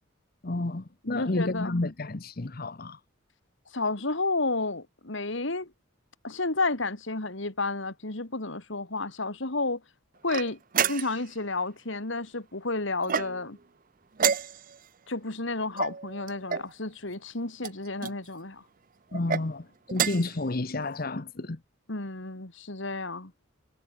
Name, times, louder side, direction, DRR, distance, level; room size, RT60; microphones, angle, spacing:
voice 1, 0.4-3.0 19.1-21.6, left 2 dB, 45° left, 1.0 m, -31 dB
voice 2, 1.0-1.8 3.7-5.7 6.2-9.8 10.2-13.6 15.1-18.6 21.9-23.3, left 3 dB, 65° left, 2.5 m, -31 dB
sound 1, 10.3-11.3 13.0-13.6 14.2-14.9 15.8-16.7 17.6-18.2 19.1-19.5 19.9-20.4, right 7 dB, 45° right, 0.7 m, -29 dB
head